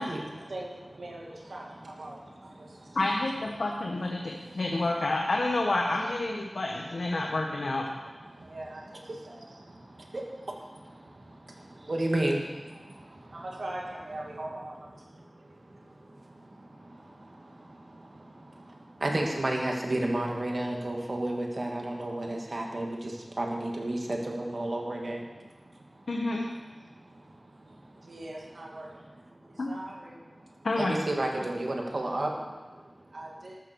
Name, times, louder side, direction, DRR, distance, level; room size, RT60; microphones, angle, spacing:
voice 1, 0.0-3.0 4.2-4.3 8.3-10.2 11.0-11.9 12.9-15.0 27.1-29.0 29.4-30.2 33.1-33.5, right 1 dB, 90° right, -3 dB, 2.2 m, -43 dB
voice 2, 2.4-3.0 4.2-4.6 8.3-8.5 9.1-13.4 15.2-26.1 26.9-28.1 29.4-29.6 30.4-33.1, right 1 dB, 60° right, 0 dB, 2.5 m, -34 dB
voice 3, 2.9-7.9 26.1-26.5 29.6-29.7 30.6-31.0, left 2 dB, 90° left, 0 dB, 1.3 m, -29 dB
13.5 x 13.0 x 4.7 m, 1.3 s
wide cardioid pair, 60°, 0 cm